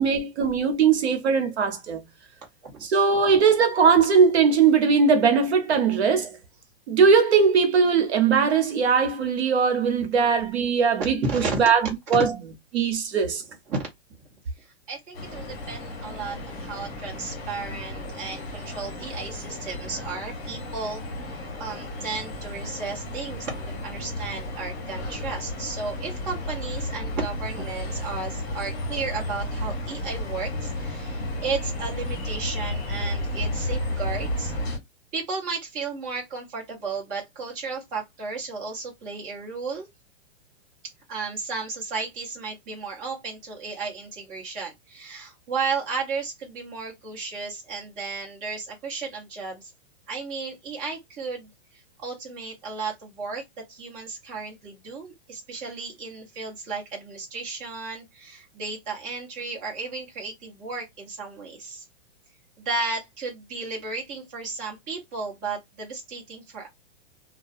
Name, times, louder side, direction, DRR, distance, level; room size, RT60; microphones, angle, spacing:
voice 1, 0.0-2.0 2.8-6.3 6.9-11.2 11.6-11.8 12.1-12.3 12.7-13.4, right 5 dB, 80° right, 0.9 m, -20 dB
voice 2, 11.2-11.6 12.1-12.2 13.7-13.8 14.6-34.5 35.1-39.9 41.1-49.7 50.1-61.9 62.6-66.7, right 4 dB, 25° right, 1.0 m, -34 dB
Sound Atmo Zurich Main Station, 15.1-34.8, left 1 dB, 25° left, 1.2 m, -33 dB
2.4 x 2.2 x 2.5 m
hypercardioid pair, 155°, 33 cm